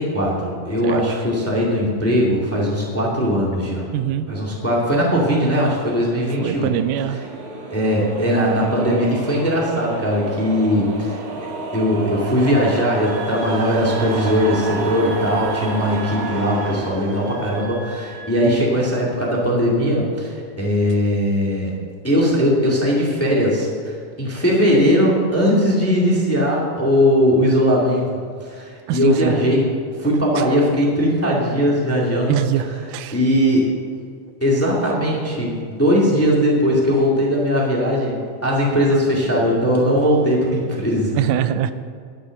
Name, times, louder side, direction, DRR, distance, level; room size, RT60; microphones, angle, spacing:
voice 1, 0.0-3.9 4.3-6.7 7.1-7.2 7.7-21.7 22.0-23.7 24.2-28.0 28.4-29.6 30.0-32.4 32.6-32.7 33.1-33.6 34.4-41.1, equal, 5° left, -4 dB, 1.5 m, -19 dB
voice 2, 3.9-4.3 6.4-7.2 28.9-29.3 32.3-33.2 41.2-41.7, right 11 dB, 90° right, 11 dB, 2.2 m, -22 dB
sound 1, 4.4-18.7, right 3 dB, 65° right, 2.4 m, -31 dB
Wind instrument woodwind instrument, 13.0-18.4, right 4 dB, 35° right, 2.9 m, -39 dB
12.0 x 7.5 x 6.4 m, 2.2 s
omnidirectional pair, 3.6 m